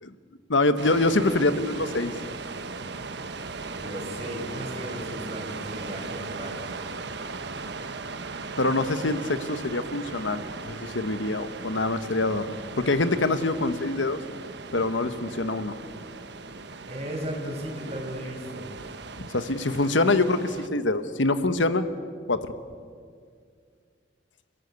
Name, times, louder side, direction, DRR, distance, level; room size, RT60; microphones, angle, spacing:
voice 1, 0.5-2.1 8.6-12.5 12.8-14.2 14.7-15.8 19.2-21.9 22.3-22.5, left 2 dB, 85° left, 11 dB, 1.2 m, -25 dB
Mirador Zihuatanejo, 0.8-20.7, right 3 dB, 65° right, 1.2 m, -38 dB
voice 2, 3.8-6.6 16.9-18.7, right 1 dB, 35° right, 1 dB, 5.3 m, -35 dB
29.5 x 17.0 x 8.3 m, 2.1 s
head